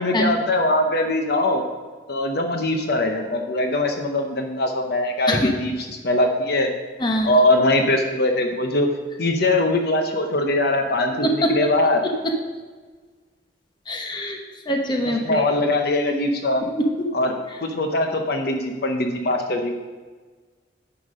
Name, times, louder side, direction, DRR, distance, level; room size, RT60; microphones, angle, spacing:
voice 1, 0.0-1.6 2.1-5.7 6.0-6.7 7.2-8.9 9.2-12.0 15.2-16.6 17.1-19.7, left 1 dB, 60° left, 4 dB, 0.8 m, -21 dB
voice 2, 7.0-7.3 13.9-14.4 14.6-15.4, left 1 dB, 25° left, 2 dB, 1.0 m, -23 dB
9.7 x 6.0 x 5.1 m, 1.4 s
head